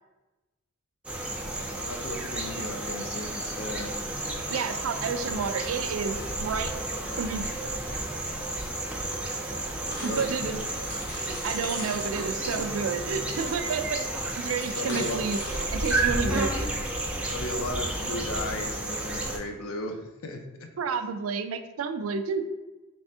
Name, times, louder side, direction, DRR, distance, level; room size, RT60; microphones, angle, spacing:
sound 1, 1.0-19.4, right 2 dB, 5° right, 0.4 m, -32 dB
voice 1, 1.8-3.9 10.0-10.7 14.8-15.2 16.1-16.4 17.3-20.7, left 1 dB, 80° left, 4 dB, 0.5 m, -35 dB
voice 2, 4.5-6.7 7.2-7.4 10.0-10.6 11.2-15.4 15.7-16.7 20.8-22.5, right 5 dB, 75° right, 9 dB, 0.3 m, -30 dB
sound 2, 9.9-16.0, left 2 dB, 55° left, 1.1 m, -43 dB
3.4 x 3.3 x 2.7 m, 1.1 s
head